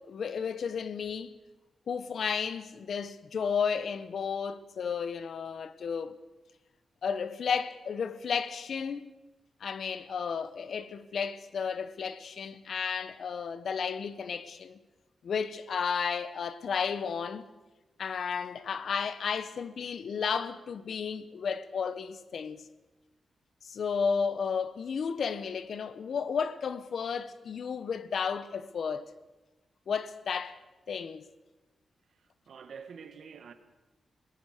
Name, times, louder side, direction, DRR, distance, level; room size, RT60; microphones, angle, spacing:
voice 1, 0.1-1.3 1.9-6.2 7.0-9.1 9.6-14.8 15.2-17.4 18.0-22.6 23.6-29.1 29.9-30.6 30.9-31.2, left 6 dB, 65° left, 1.1 m, -33 dB
voice 2, 32.5-33.5, right 6 dB, 70° right, 1.8 m, -46 dB
21.5 x 19.0 x 6.7 m
wide cardioid pair, 125°, 0 cm